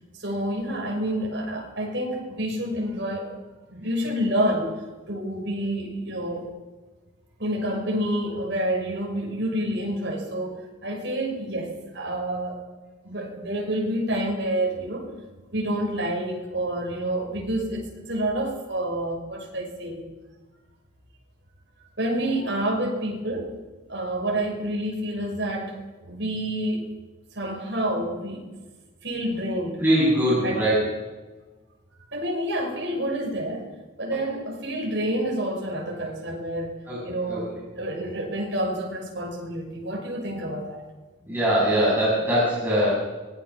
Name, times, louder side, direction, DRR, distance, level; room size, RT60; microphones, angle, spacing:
voice 1, 0.2-3.3 3.7-4.7 5.1-6.5 7.4-10.6 10.8-12.6 13.0-15.1 15.5-20.0 22.0-23.5 23.9-26.9 27.3-28.5 29.0-29.8 30.2-30.7 32.1-33.6 34.0-36.8 37.0-40.8, right 1 dB, 65° right, -1 dB, 6.2 m, -28 dB
voice 2, 29.8-30.8 36.8-37.4 41.2-42.9, equal, 10° right, -8 dB, 7.8 m, -22 dB
25.5 x 20.5 x 6.0 m, 1.3 s
head